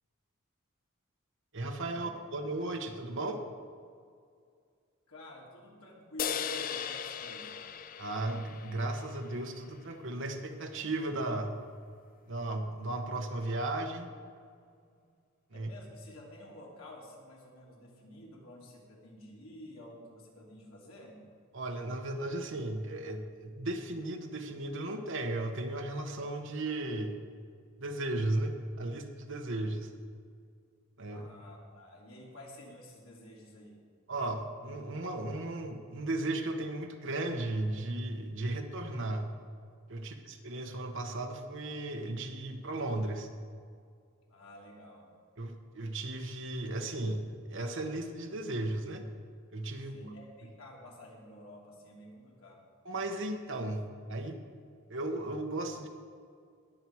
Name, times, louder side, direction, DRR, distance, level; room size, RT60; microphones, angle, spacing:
voice 1, 1.5-3.4 8.0-11.6 12.3-14.1 15.5-15.7 21.5-27.1 27.8-29.9 31.0-31.3 34.1-39.3 39.9-43.3 45.4-49.0 49.5-49.9 52.8-54.4 54.9-55.9, right 2 dB, 65° right, 4 dB, 1.3 m, -35 dB
voice 2, 5.1-7.6 14.9-15.0 15.5-21.2 31.1-33.8 44.3-45.2 49.8-52.7, left 1 dB, 85° left, -3 dB, 3.0 m, -50 dB
sound 1, 6.2-9.7, left 8 dB, 40° left, 0.5 m, -38 dB
20.0 x 7.2 x 4.7 m, 2.2 s
head